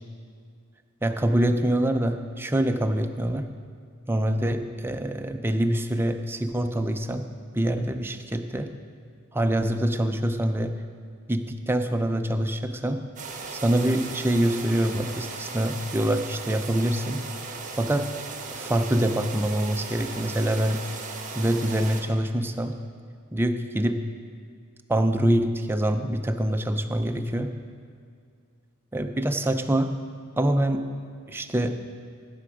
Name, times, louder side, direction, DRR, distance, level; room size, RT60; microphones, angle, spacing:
voice 1, 1.0-3.5 4.1-7.2 7.5-8.7 9.3-10.7 11.3-13.0 13.5-17.2 17.8-18.1 18.5-20.8 21.3-22.7 23.3-24.0 24.9-27.5 28.9-29.9 30.4-30.8 31.3-31.8, right 1 dB, 10° right, 6 dB, 0.5 m, -25 dB
sound 1, 13.2-22.0, right 4 dB, 35° right, 1.2 m, -37 dB
16.0 x 6.9 x 5.0 m, 2.3 s
head